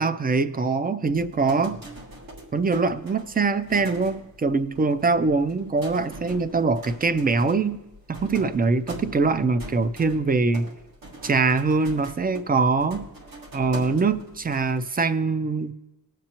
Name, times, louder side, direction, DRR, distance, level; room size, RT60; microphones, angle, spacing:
voice 1, 0.0-1.8 2.5-7.8 8.1-10.7 11.2-13.0 13.5-15.7, right 4 dB, 25° right, 12 dB, 0.4 m, -23 dB
sound 1, 1.0-14.8, right 1 dB, 75° right, 1.9 m, -43 dB
20.0 x 7.5 x 2.9 m, 1.0 s
wide cardioid pair, 175°, 34 cm